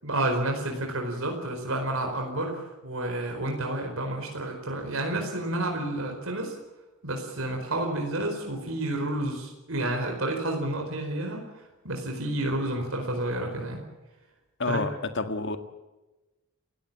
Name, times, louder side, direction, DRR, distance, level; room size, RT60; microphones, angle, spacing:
voice 1, 0.0-6.6 7.0-13.8 14.7-14.9, right 1 dB, 65° right, 2 dB, 4.7 m, -30 dB
voice 2, 14.6-15.6, left 3 dB, 55° left, 8 dB, 1.9 m, -29 dB
29.5 x 16.5 x 7.5 m, 1.1 s
head